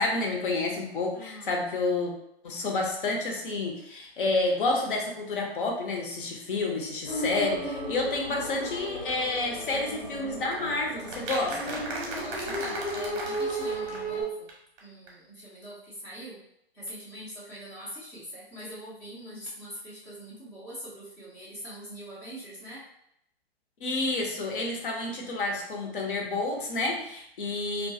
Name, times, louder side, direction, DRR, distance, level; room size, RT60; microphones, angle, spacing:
voice 1, 0.0-2.1 2.4-11.8 23.8-27.9, left 2 dB, 55° left, 1 dB, 0.7 m, -29 dB
voice 2, 1.1-1.6 12.1-14.5 14.8-16.4 16.7-22.8, equal, 5° left, -7 dB, 0.4 m, -43 dB
sound 1, 7.1-14.2, right 1 dB, 85° left, 1.2 m, -35 dB
sound 2, 10.5-14.2 14.5-14.6 14.8-14.9 15.1-15.2, right 2 dB, 35° right, 0.7 m, -37 dB
2.2 x 2.2 x 2.6 m, 0.77 s
hypercardioid pair, 130°, 31 cm